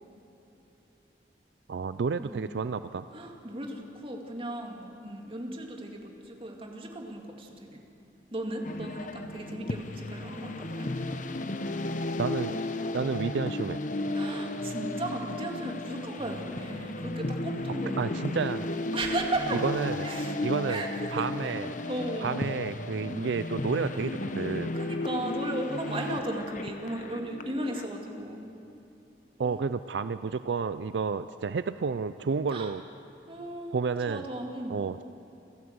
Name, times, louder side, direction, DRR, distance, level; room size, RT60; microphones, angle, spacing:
voice 1, 1.7-3.1 12.2-12.6 12.9-13.8 17.5-17.6 18.0-18.7 19.6-20.1 20.4-20.8 21.1-21.7 22.2-24.7 29.4-32.8 33.7-34.3 34.7-35.0, right 5 dB, 80° right, 13 dB, 0.4 m, -30 dB
voice 2, 3.1-7.8 8.3-10.9 14.1-18.4 18.9-19.6 20.0-20.3 20.7-21.6 21.9-22.3 24.7-28.5 29.5-29.6 32.5-32.7 33.3-34.7, right 1 dB, 30° right, 1 dB, 2.3 m, -36 dB
sound 1, 8.6-27.8, left 2 dB, 45° left, 0.9 m, -34 dB
29.0 x 11.5 x 8.0 m, 2.9 s
head